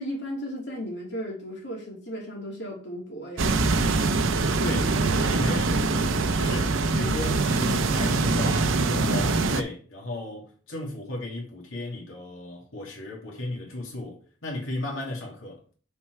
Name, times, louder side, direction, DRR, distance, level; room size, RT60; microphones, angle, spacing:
voice 1, 0.0-3.5, equal, 60° left, 2.6 m, -35 dB
sound 1, 3.4-9.6, right 3 dB, 80° right, 0.7 m, -24 dB
voice 2, 4.3-15.6, left 2 dB, 85° left, 2.3 m, -35 dB
6.8 x 4.5 x 4.6 m
head